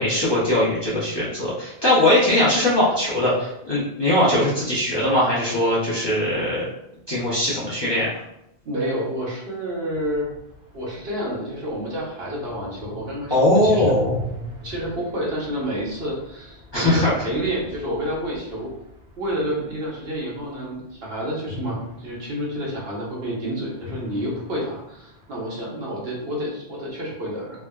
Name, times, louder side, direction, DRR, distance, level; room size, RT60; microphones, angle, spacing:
voice 1, 0.0-6.6 7.1-8.1 13.3-14.1 16.7-17.1, left 1 dB, 25° left, -9 dB, 0.7 m, -20 dB
voice 2, 8.6-10.3 10.7-14.0 14.6-18.7 19.2-27.6, equal, 65° right, -4 dB, 1.0 m, -29 dB
sound 1, 9.9-20.1 21.5-23.4 23.7-25.4, left 2 dB, 80° right, 1.3 m, -38 dB
3.4 x 2.0 x 2.2 m, 0.82 s
omnidirectional pair, 1.1 m